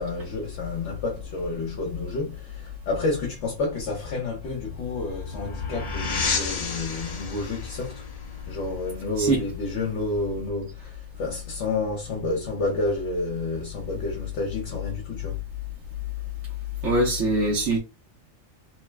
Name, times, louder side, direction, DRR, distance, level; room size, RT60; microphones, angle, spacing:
voice 1, 0.0-8.1 8.5-15.4, left 2 dB, 60° left, 1.1 m, -30 dB
sound 1, 4.5-9.6, left 4 dB, 90° left, 0.3 m, -33 dB
voice 2, 16.8-17.8, right 2 dB, 65° right, 1.2 m, -22 dB
3.2 x 2.0 x 3.2 m
omnidirectional pair, 1.4 m